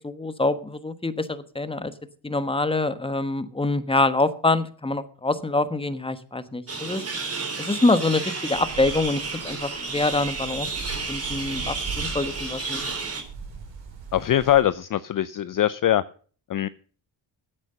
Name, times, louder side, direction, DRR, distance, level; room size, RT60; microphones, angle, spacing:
voice 1, 0.0-1.9 2.2-7.0 7.6-10.7 11.1-12.8, left 2 dB, 10° left, 12 dB, 1.2 m, -25 dB
sound 1, 6.7-13.2, right 4 dB, 30° right, 3.2 m, -32 dB
sound 2, 8.5-14.6, right 5 dB, 70° right, 4.5 m, -40 dB
voice 2, 14.1-16.0 16.5-16.7, left 12 dB, 45° left, 16 dB, 0.5 m, -22 dB
10.5 x 8.5 x 6.6 m, 0.42 s
cardioid pair, 65°, 46 cm